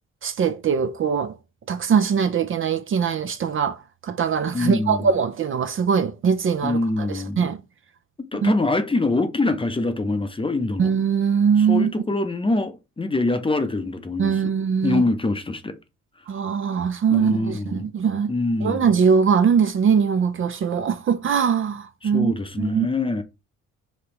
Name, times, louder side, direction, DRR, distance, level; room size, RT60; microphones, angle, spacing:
voice 1, 0.2-1.4 1.7-7.6 8.4-8.5 10.8-11.9 14.2-15.0 16.3-18.3 18.6-22.9, right 6 dB, 45° right, 0.5 m, -22 dB
voice 2, 4.5-5.1 6.6-7.5 8.2-10.9 11.6-14.5 14.8-15.8 17.1-17.9 18.3-18.9 22.0-23.2, left 2 dB, 20° left, 0.6 m, -24 dB
5.2 x 2.9 x 2.9 m
cardioid pair, 90°, 30 cm